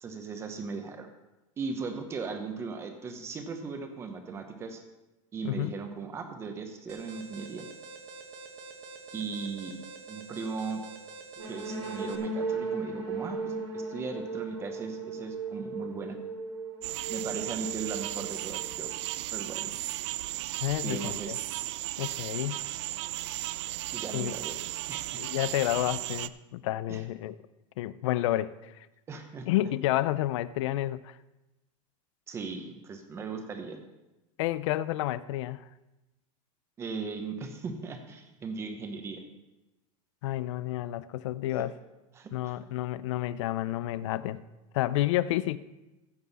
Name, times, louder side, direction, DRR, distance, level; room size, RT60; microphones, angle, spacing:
voice 1, 0.0-1.1 1.6-4.8 5.3-7.6 9.1-9.8 10.1-10.8 11.4-16.2 17.1-18.9 19.3-19.7 20.7-21.4 23.9-24.6 24.9-25.3 26.9-27.0 29.1-29.5 32.3-33.8 36.8-39.2 41.5-41.7 42.1-42.6, right 4 dB, 15° right, 6 dB, 0.9 m, -38 dB
Alarm, 6.9-12.2, right 4 dB, 35° right, 1.3 m, -46 dB
sound 1, 11.4-19.1, right 4 dB, 75° right, 4.0 m, -37 dB
sound 2, 16.8-26.3, right 16 dB, 55° right, 0.4 m, -35 dB
voice 2, 20.6-21.4 22.0-22.6 24.1-24.4 25.2-27.4 27.8-28.9 29.5-31.2 34.4-35.6 40.2-41.7 42.3-44.4 44.7-45.6, left 14 dB, 65° left, 16 dB, 0.5 m, -30 dB
14.5 x 7.8 x 4.1 m, 1.0 s
supercardioid pair, 175°, 17 cm